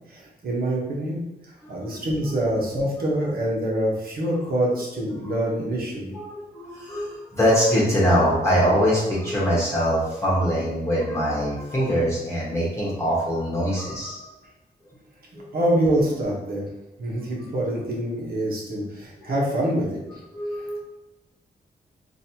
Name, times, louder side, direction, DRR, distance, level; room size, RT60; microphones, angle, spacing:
voice 1, 0.1-6.1 15.3-16.6 17.0-20.2 20.6-20.7, right 1 dB, 60° right, -3 dB, 1.1 m, -26 dB
voice 2, 1.6-2.0 3.2-3.3 5.2-5.3 6.1-14.2 15.3-15.4 17.2-17.3 19.2-19.4 20.3-20.8, equal, 15° left, -8 dB, 1.2 m, -23 dB
4.1 x 2.6 x 2.8 m, 0.99 s
cardioid pair, 85°, 17 cm